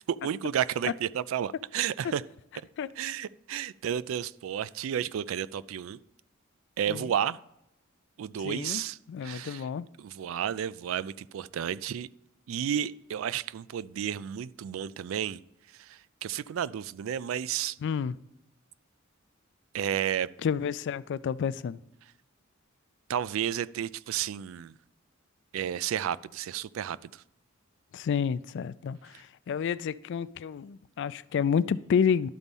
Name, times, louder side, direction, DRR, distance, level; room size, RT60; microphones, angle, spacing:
voice 1, 0.1-2.2 3.0-6.0 6.8-7.4 8.2-9.7 10.0-12.1 12.5-15.4 15.8-17.8 19.7-20.3 23.1-24.7 25.5-27.2, right 9 dB, 70° right, 0.3 m, -32 dB
voice 2, 8.4-8.8 9.1-9.9 17.8-18.2 20.4-21.8 27.9-32.3, left 7 dB, 60° left, 0.3 m, -29 dB
12.0 x 4.1 x 5.3 m
head